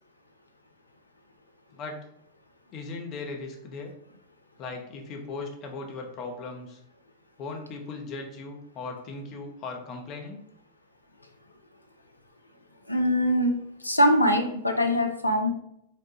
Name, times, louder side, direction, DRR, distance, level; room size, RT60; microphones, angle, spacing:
voice 1, 2.7-3.9 4.6-6.8 7.4-10.4, left 3 dB, 35° left, 2 dB, 0.7 m, -38 dB
voice 2, 12.9-15.5, equal, 85° left, 5 dB, 0.4 m, -23 dB
3.9 x 2.1 x 3.0 m, 0.75 s
figure-of-eight pair, 90°, 0 cm